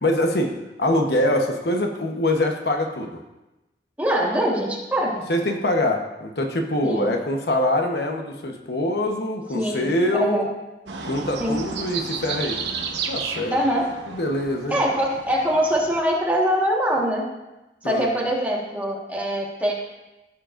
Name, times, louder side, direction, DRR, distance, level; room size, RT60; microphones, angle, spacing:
voice 1, 0.0-3.1 5.3-10.5 11.0-12.6 13.1-13.5 14.1-14.8 17.8-18.1, left 1 dB, 70° left, 3 dB, 1.0 m, -24 dB
voice 2, 4.0-5.2 6.8-7.1 9.5-9.9 10.2-10.5 11.4-11.6 13.5-13.9 14.7-17.2 17.8-19.7, equal, 10° right, -3 dB, 1.5 m, -23 dB
sound 1, 10.9-16.0, right 5 dB, 85° right, 1.1 m, -33 dB
16.5 x 7.5 x 2.6 m, 1.0 s
head